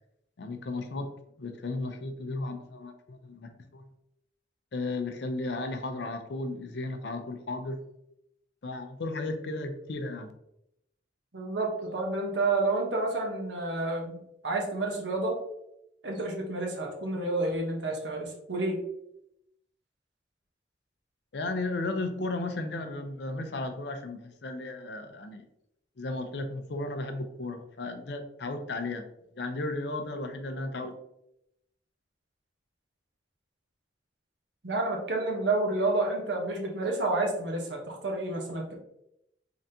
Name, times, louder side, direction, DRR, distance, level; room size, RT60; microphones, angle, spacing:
voice 1, 0.4-1.1 1.4-3.8 4.7-7.8 8.6-10.3 21.3-25.4 26.0-29.0 29.4-30.9, left 2 dB, 70° left, 7 dB, 0.5 m, -34 dB
voice 2, 11.3-14.2 14.4-15.4 16.0-18.8 34.6-38.7, right 2 dB, 80° right, 1 dB, 1.0 m, -29 dB
3.9 x 3.4 x 2.7 m, 0.80 s
head